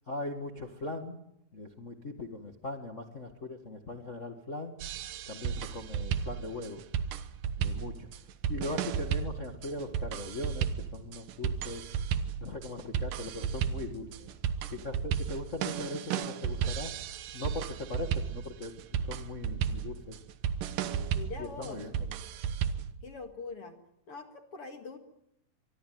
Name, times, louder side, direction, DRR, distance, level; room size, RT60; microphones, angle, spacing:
voice 1, 0.1-1.2 1.5-4.7 5.3-6.8 7.6-8.1 8.5-11.8 12.4-14.3 14.7-16.9 17.3-20.2 21.4-21.9, left 2 dB, 75° left, 5 dB, 0.6 m, -40 dB
sound 1, 4.8-22.9, right 8 dB, 65° right, 2.5 m, -34 dB
voice 2, 21.1-21.9 23.0-23.8 24.1-25.0, left 4 dB, 45° left, 6 dB, 2.3 m, -43 dB
24.0 x 23.5 x 9.3 m, 0.80 s
omnidirectional pair, 4.5 m